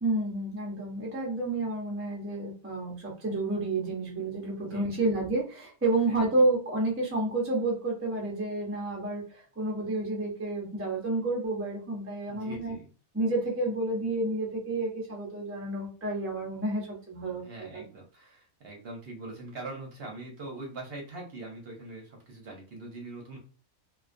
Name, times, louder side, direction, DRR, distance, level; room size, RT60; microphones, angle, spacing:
voice 1, 0.0-12.7 13.1-17.4 17.7-17.8, right 2 dB, 20° right, -2 dB, 0.3 m, -30 dB
voice 2, 4.6-5.1 6.1-6.3 12.3-12.9 17.4-23.4, right 2 dB, 55° right, 0 dB, 0.8 m, -42 dB
2.3 x 2.3 x 2.5 m, 0.39 s
omnidirectional pair, 1.4 m